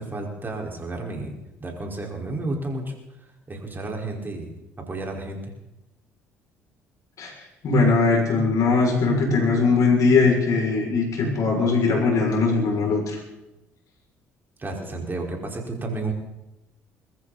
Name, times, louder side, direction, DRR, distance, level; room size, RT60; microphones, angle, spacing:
voice 1, 0.0-2.9 3.5-4.6 4.9-5.4 14.6-16.1, right 2 dB, 30° right, 1 dB, 5.0 m, -31 dB
voice 2, 7.6-13.2, left 4 dB, 55° left, 0 dB, 6.7 m, -20 dB
22.0 x 14.5 x 4.3 m, 0.96 s
hypercardioid pair, 55°, 7 cm